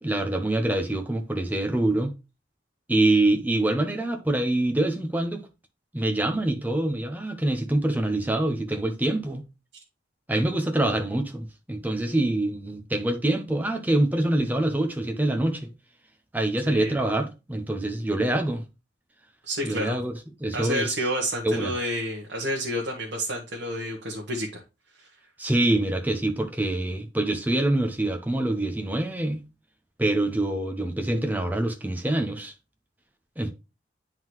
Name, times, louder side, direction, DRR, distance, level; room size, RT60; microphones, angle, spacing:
voice 1, 0.0-2.1 2.9-5.5 5.9-9.4 10.3-15.7 16.3-18.6 19.6-20.1 20.4-21.0 21.4-21.8 25.4-29.4 30.0-32.5 33.4-33.5, right 1 dB, 10° right, 0.8 m, -25 dB
voice 2, 19.4-20.0 20.5-24.6 25.0-25.1, equal, 65° right, 1.2 m, -29 dB
9.4 x 3.8 x 3.0 m
head